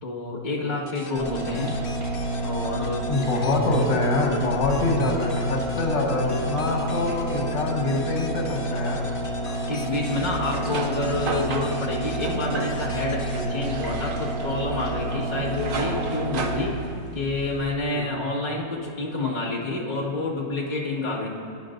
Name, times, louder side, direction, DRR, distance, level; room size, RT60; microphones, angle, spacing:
voice 1, 0.0-1.8 2.4-3.1 6.6-6.9 9.7-16.8 17.1-21.3, left 2 dB, 25° left, -5 dB, 1.8 m, -28 dB
sound 1, 0.9-14.5, left 4 dB, 50° left, 0.6 m, -42 dB
sound 2, 1.2-16.6, right 1 dB, 15° right, 2.6 m, -30 dB
voice 2, 3.1-9.0 13.3-13.5 17.9-18.1, left 2 dB, 75° left, -1 dB, 1.9 m, -25 dB
sound 3, 10.0-17.7, right 4 dB, 60° right, 0.5 m, -34 dB
20.5 x 10.0 x 2.6 m, 2.2 s
omnidirectional pair, 1.9 m